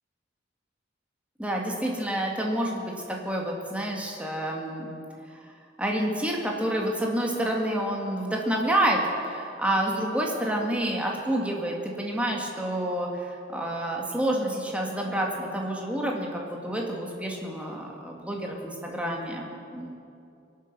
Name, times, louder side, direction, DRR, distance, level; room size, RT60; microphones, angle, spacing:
voice 1, 1.4-4.9 5.4-5.5 5.8-19.9, right 1 dB, 5° right, -1 dB, 2.0 m, -28 dB
23.5 x 8.4 x 6.1 m, 2.6 s
head